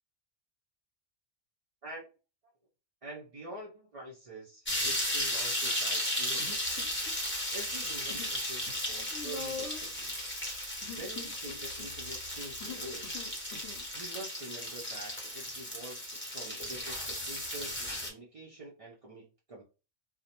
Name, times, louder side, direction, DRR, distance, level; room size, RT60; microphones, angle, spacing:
voice 1, 1.8-2.1 3.0-6.7 7.3-10.4 10.9-13.1 13.9-19.6, right 1 dB, 50° right, -5 dB, 0.4 m, -46 dB
sound 1, 4.7-18.1, left 1 dB, 15° left, 0.5 m, -35 dB
Human voice, 6.4-7.3 7.6-8.4 8.6-13.8, left 5 dB, 65° left, 0.8 m, -44 dB
2.4 x 2.0 x 2.8 m, 0.32 s
omnidirectional pair, 1.3 m